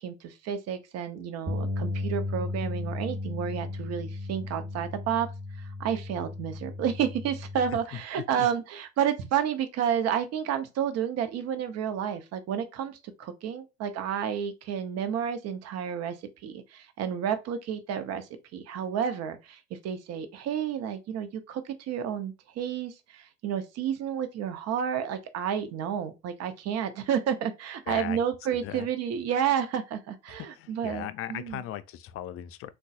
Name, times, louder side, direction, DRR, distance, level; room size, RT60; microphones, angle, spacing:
voice 1, 0.0-5.3 5.6-16.2 16.4-18.3 18.5-31.6, right 8 dB, 60° right, 0.7 m, -31 dB
Bass guitar, 1.5-7.7, left 2 dB, 25° right, 1.0 m, -35 dB
voice 2, 7.7-8.5 27.9-28.2 28.5-28.9 30.3-32.7, left 12 dB, 50° left, 0.4 m, -38 dB
3.8 x 2.3 x 2.4 m
hypercardioid pair, 70°, 29 cm